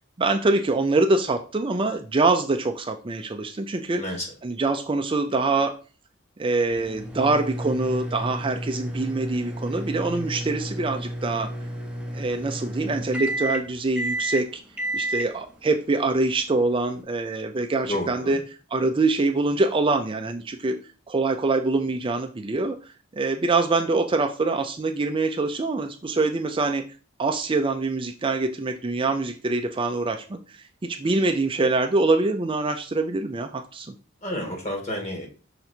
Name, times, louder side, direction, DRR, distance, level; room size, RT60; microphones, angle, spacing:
voice 1, 0.2-4.0 4.4-5.7 6.4-11.5 12.1-14.6 14.9-18.4 18.7-20.8 21.1-26.8 27.2-33.9, right 3 dB, 25° right, 5 dB, 0.5 m, -24 dB
voice 2, 3.9-4.3 17.8-18.4 34.2-35.3, left 1 dB, 35° left, 1 dB, 2.1 m, -30 dB
sound 1, 6.7-17.0, right 1 dB, 5° right, 0.8 m, -32 dB
5.8 x 3.9 x 4.3 m, 0.37 s
head